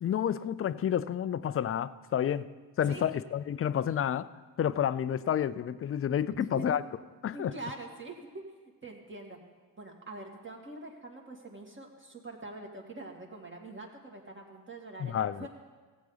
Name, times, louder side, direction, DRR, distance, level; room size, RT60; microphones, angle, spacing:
voice 1, 0.0-2.5 2.8-4.3 4.6-6.8 7.2-7.5 15.0-15.5, left 9 dB, 30° left, 15 dB, 0.4 m, -30 dB
voice 2, 6.4-6.8 7.3-9.4 9.8-15.5, right 2 dB, 25° right, 0 dB, 2.2 m, -44 dB
15.5 x 8.3 x 4.0 m, 1.4 s
supercardioid pair, 60°, 46 cm